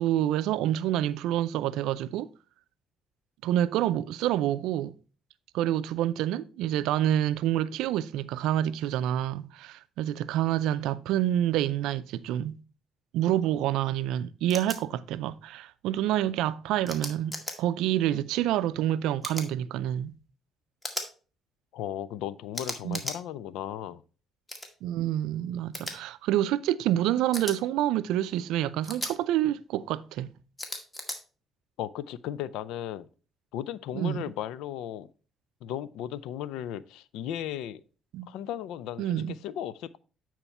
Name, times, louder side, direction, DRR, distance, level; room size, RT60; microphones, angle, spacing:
voice 1, 0.0-2.3 3.4-4.9 5.5-12.6 13.1-20.2 22.8-23.0 24.8-30.3 33.9-34.3 38.1-38.3 39.0-39.3, right 12 dB, 80° right, 0.4 m, -27 dB
sound 1, 14.5-14.8 16.9-17.5 19.2-19.5 20.8-21.1 22.5-23.2 24.5-24.7 25.7-25.9 27.3-27.6 28.8-29.1 30.6-31.2, left 1 dB, 20° left, 2.0 m, -36 dB
voice 2, 21.7-24.0 31.8-33.1 33.5-35.1 35.6-37.8 38.3-40.0, left 11 dB, 80° left, 0.4 m, -36 dB
9.0 x 4.4 x 4.3 m
supercardioid pair, 65°, 0 cm